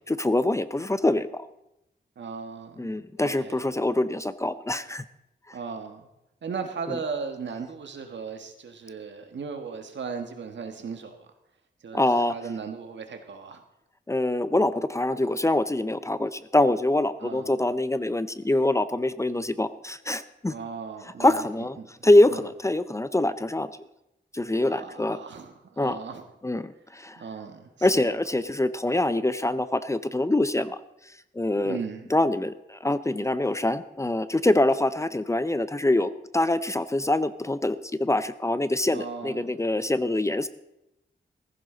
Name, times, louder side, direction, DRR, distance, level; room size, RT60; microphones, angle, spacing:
voice 1, 0.1-1.5 2.8-5.0 6.9-7.0 11.9-12.3 14.1-20.5 21.2-21.8 22.0-23.7 24.3-25.2 25.8-26.0 26.4-27.2 27.8-30.8 31.3-31.8 32.1-40.5, left 1 dB, 15° left, 13 dB, 0.6 m, -24 dB
voice 2, 2.1-2.9 3.2-3.6 5.5-6.1 6.4-11.3 11.8-13.6 17.2-17.5 20.5-21.5 21.8-21.9 22.3-22.4 24.7-26.2 27.2-28.0 31.5-32.1 38.9-39.6, right 5 dB, 80° right, 5 dB, 1.6 m, -37 dB
15.5 x 15.0 x 3.9 m, 0.88 s
wide cardioid pair, 100°, 18 cm